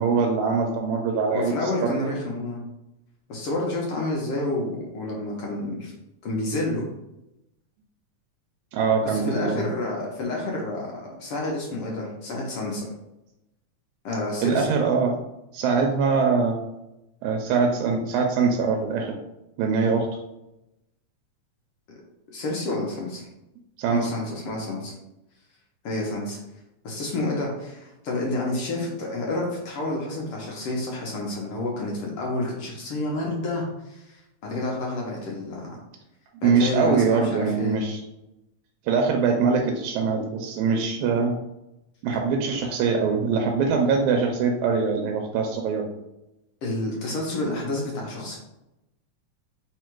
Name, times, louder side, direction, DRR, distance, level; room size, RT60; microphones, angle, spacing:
voice 1, 0.0-2.0 8.7-9.6 14.4-15.1 15.5-16.6 17.2-19.2 19.6-20.1 23.8-24.1 36.3-38.0 38.9-41.3 42.0-45.9, right 5 dB, 85° right, 2 dB, 1.9 m, -23 dB
voice 2, 1.3-2.6 3.3-5.9 6.2-6.8 9.1-10.9 11.2-12.8 14.0-14.7 22.3-23.3 23.9-24.9 25.8-26.4 26.8-33.6 33.9-34.0 34.4-35.8 36.4-37.8 46.6-48.4, left 2 dB, 65° left, -2 dB, 1.4 m, -29 dB
4.6 x 2.4 x 4.4 m, 0.89 s
omnidirectional pair, 3.4 m